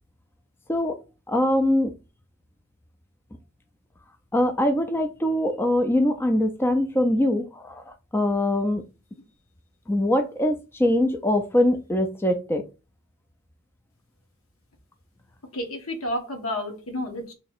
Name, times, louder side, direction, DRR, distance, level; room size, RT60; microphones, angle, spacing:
voice 1, 1.3-1.9 4.3-8.8 9.9-12.6, left 1 dB, 10° left, 6 dB, 0.4 m, -23 dB
voice 2, 15.5-17.3, left 1 dB, 75° left, 4 dB, 1.2 m, -30 dB
3.1 x 2.8 x 4.2 m, 0.29 s
head